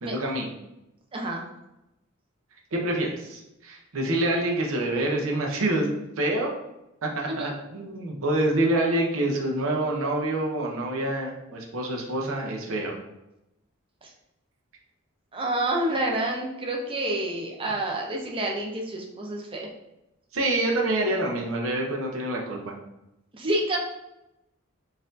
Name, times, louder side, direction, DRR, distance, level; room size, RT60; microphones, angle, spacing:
voice 1, 0.0-0.5 2.7-5.9 6.2-6.5 7.0-13.0 20.3-22.7, right 1 dB, 80° right, 0 dB, 0.7 m, -26 dB
voice 2, 1.1-1.4 7.4-7.5 14.0-14.1 15.3-19.7 23.3-23.8, right 1 dB, 25° right, 0 dB, 0.6 m, -28 dB
4.0 x 2.6 x 2.6 m, 0.89 s
head